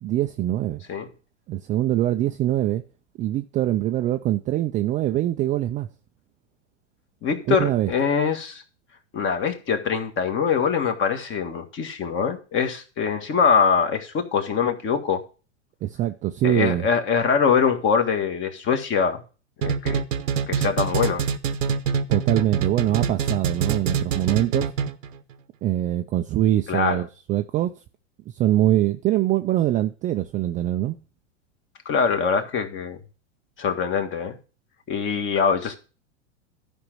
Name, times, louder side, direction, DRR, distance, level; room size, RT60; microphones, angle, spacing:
voice 1, 0.0-0.8 1.5-2.8 3.2-5.9 7.5-7.9 15.8-16.9 22.1-24.7 25.6-27.7 28.4-30.9, right 13 dB, 20° right, 0.4 m, -23 dB
voice 2, 7.2-8.6 9.1-15.2 16.4-19.2 19.6-20.0 20.5-21.3 26.7-27.0 31.9-33.0 33.6-34.4 34.9-35.8, left 6 dB, 30° left, 1.8 m, -23 dB
sound 1, 19.6-25.1, right 7 dB, 90° right, 1.0 m, -25 dB
11.5 x 5.3 x 6.1 m
hypercardioid pair, 115°, 37 cm